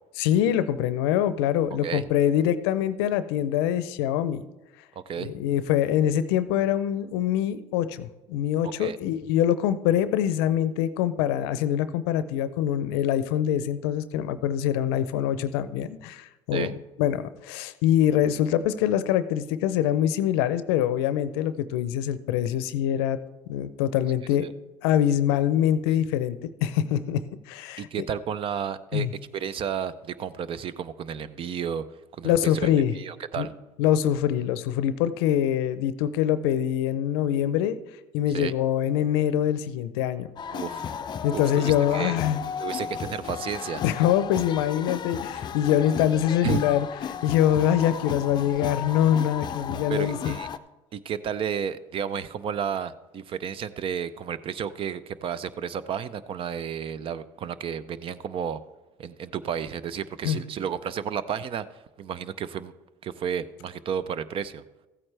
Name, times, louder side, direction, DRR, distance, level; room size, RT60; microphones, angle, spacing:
voice 1, 0.2-4.4 5.2-16.7 17.0-23.2 23.5-24.5 24.8-27.9 28.9-29.1 32.2-32.9 33.4-33.5 33.8-37.8 38.1-40.3 41.2-42.4 43.8-46.9 47.2-50.4 60.2-60.4, left 10 dB, 85° left, 14 dB, 0.6 m, -24 dB
voice 2, 27.8-29.1 29.3-31.8 32.2-33.5 38.3-38.5 40.5-40.8 41.3-42.3 42.6-43.8 46.4-46.8 49.9-50.5 50.9-58.6 59.0-61.7 62.0-62.7 63.0-64.6, right 8 dB, 45° right, 16 dB, 0.6 m, -32 dB
sound 1, 40.4-50.6, left 7 dB, 35° left, 0.5 m, -34 dB
14.5 x 8.7 x 3.3 m, 1.1 s
supercardioid pair, 95°, 13 cm